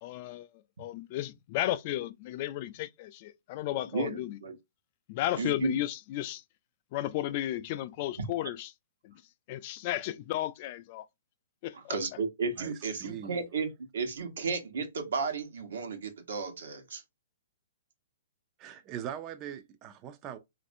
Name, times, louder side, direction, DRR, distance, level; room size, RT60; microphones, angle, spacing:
voice 1, 0.0-0.5 0.8-4.4 5.1-6.4 6.9-8.7 9.0-9.1 9.5-11.1, left 14 dB, 40° left, 0.3 m, -33 dB
voice 2, 3.9-4.5 5.3-5.8 11.9-17.0, right 4 dB, 75° right, 1.0 m, -33 dB
voice 3, 12.6-13.4 18.6-20.4, right 9 dB, 30° right, 0.4 m, -41 dB
3.2 x 2.5 x 2.6 m
hypercardioid pair, 140°, 0 cm